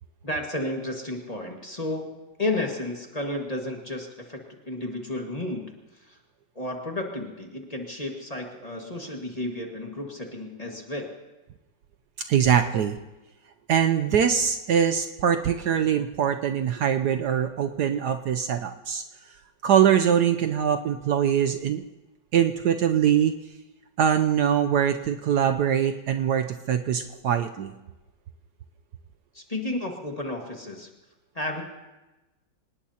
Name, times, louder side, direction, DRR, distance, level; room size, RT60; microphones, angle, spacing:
voice 1, 0.2-4.4 4.7-5.7 5.9-6.2 6.6-11.1 29.3-30.9 31.3-31.6, left 1 dB, 20° left, 1 dB, 1.8 m, -32 dB
voice 2, 12.3-13.0 13.7-19.0 19.6-21.8 22.3-23.3 24.0-27.7, right 8 dB, 70° right, 7 dB, 1.1 m, -23 dB
25.5 x 19.0 x 2.9 m, 1.1 s
omnidirectional pair, 2.0 m